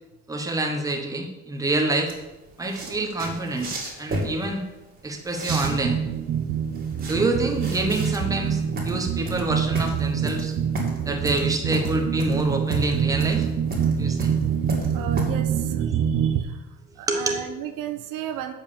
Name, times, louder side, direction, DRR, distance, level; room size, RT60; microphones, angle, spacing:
voice 1, 0.3-2.1 2.6-4.6 5.0-6.0 7.0-10.5 11.1-13.5 14.0-14.3 17.1-17.4, right 2 dB, 10° right, 2 dB, 1.2 m, -27 dB
sound 1, 2.1-15.2, right 1 dB, 30° right, 2.4 m, -34 dB
sound 2, 5.5-16.4, right 8 dB, 50° right, 0.8 m, -25 dB
voice 2, 14.9-16.6 17.0-18.5, right 10 dB, 85° right, 8 dB, 1.0 m, -34 dB
7.5 x 5.6 x 6.9 m, 1.0 s
cardioid pair, 155°, 32 cm